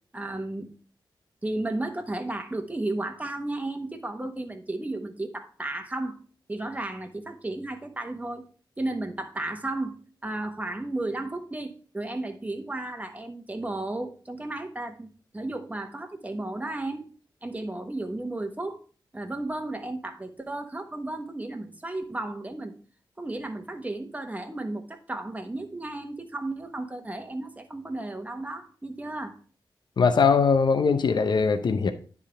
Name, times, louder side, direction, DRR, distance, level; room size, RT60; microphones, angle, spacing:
voice 1, 0.1-0.7 1.4-6.2 6.5-8.4 8.8-17.1 17.4-18.8 19.1-22.7 23.2-29.3, right 2 dB, 20° right, 6 dB, 1.2 m, -33 dB
voice 2, 30.0-31.9, left 5 dB, 65° left, 8 dB, 0.7 m, -21 dB
9.9 x 3.7 x 4.9 m, 0.40 s
wide cardioid pair, 75°, 8 cm